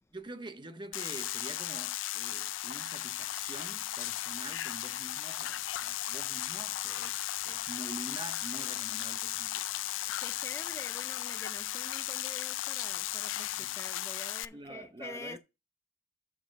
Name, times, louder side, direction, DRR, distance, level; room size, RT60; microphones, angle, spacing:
voice 1, 0.1-9.7 13.6-13.8 14.5-15.4, right 2 dB, 25° right, 0.7 m, -46 dB
sound 1, 0.9-14.4, left 14 dB, 85° left, 0.4 m, -36 dB
sound 2, 3.1-13.9, left 3 dB, 45° left, 1.7 m, -66 dB
voice 2, 10.2-15.4, left 3 dB, 15° left, 0.4 m, -46 dB
7.1 x 6.3 x 5.2 m
head